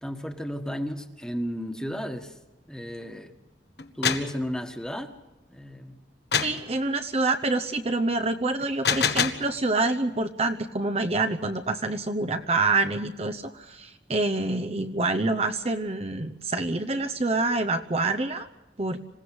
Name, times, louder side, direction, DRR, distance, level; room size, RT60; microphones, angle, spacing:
voice 1, 0.0-2.4 2.7-3.3 3.9-5.1 5.5-6.0, equal, 5° left, 5 dB, 1.6 m, -33 dB
sound 1, 3.8-4.3 6.3-6.6 8.6-9.5, left 6 dB, 65° left, 1.6 m, -25 dB
voice 2, 6.4-18.5 18.8-19.0, right 2 dB, 35° right, 7 dB, 0.9 m, -26 dB
27.0 x 16.5 x 7.9 m, 1.0 s
head